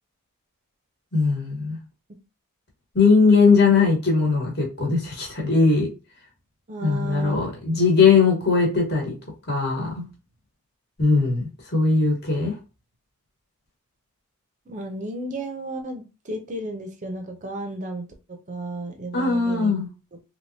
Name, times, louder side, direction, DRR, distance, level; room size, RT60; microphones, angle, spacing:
voice 1, 1.1-1.8 2.9-5.9 6.8-9.1 9.5-10.1 11.0-12.6 19.1-19.9, left 4 dB, 45° left, -1 dB, 1.3 m, -20 dB
voice 2, 6.7-7.3 7.7-7.8 14.7-19.7, right 1 dB, 35° right, 4 dB, 0.5 m, -33 dB
3.3 x 2.9 x 2.7 m, 0.31 s
head